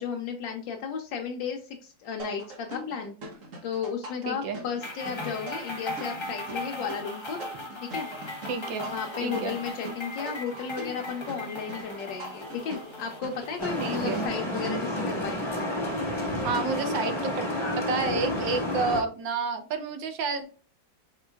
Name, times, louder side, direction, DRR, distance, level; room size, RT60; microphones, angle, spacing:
voice 1, 0.0-3.1 3.6-7.4 7.8-8.1 8.9-15.4, left 6 dB, 75° left, 2 dB, 1.3 m, -34 dB
sound 1, 2.2-15.3, right 1 dB, 50° right, 1.1 m, -43 dB
voice 2, 4.3-4.6 8.5-8.9 9.2-9.5 13.8-14.2 16.4-17.5 17.8-20.5, right 4 dB, 75° right, 7 dB, 1.4 m, -30 dB
sound 2, 4.8-14.3, left 1 dB, 50° left, 0.3 m, -38 dB
sound 3, 13.6-19.0, left 1 dB, 15° left, 1.3 m, -30 dB
4.7 x 4.3 x 2.3 m, 0.40 s
omnidirectional pair, 2.1 m